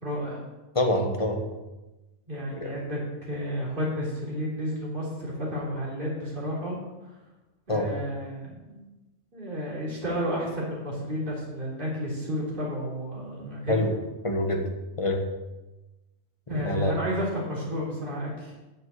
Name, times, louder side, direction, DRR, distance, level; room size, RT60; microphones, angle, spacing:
voice 1, 0.0-0.4 2.3-6.8 7.7-8.8 9.3-13.8 16.5-18.6, equal, 40° right, -5 dB, 3.5 m, -31 dB
voice 2, 0.7-1.4 2.6-2.7 7.7-7.9 13.7-13.9 14.2-14.6 15.0-15.3 16.5-17.0, left 1 dB, 25° left, 3 dB, 1.3 m, -26 dB
9.1 x 5.9 x 8.0 m, 1.1 s
omnidirectional pair, 1.4 m